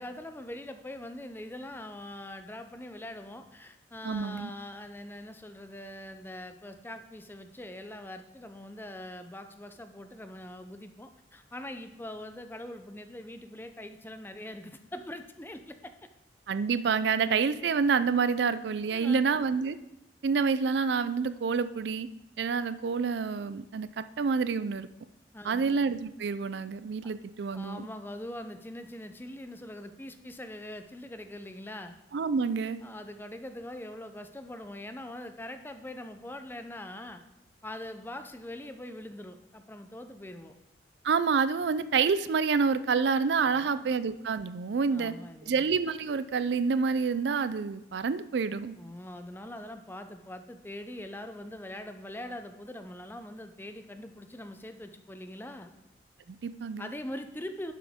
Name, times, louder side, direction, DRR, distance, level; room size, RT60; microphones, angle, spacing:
voice 1, 0.0-15.9 18.9-19.2 25.3-25.8 27.0-27.1 27.5-31.9 32.8-37.2 37.6-40.5 43.4-43.9 44.9-45.6 48.8-55.7 56.8-57.7, left 1 dB, 10° left, 8 dB, 0.5 m, -42 dB
voice 2, 4.0-4.5 16.5-19.8 20.2-22.1 22.4-24.9 25.4-27.9 32.1-32.8 41.0-45.1 45.4-48.8 56.3-56.9, right 5 dB, 65° right, 14 dB, 0.4 m, -28 dB
11.0 x 7.6 x 3.6 m, 0.87 s
head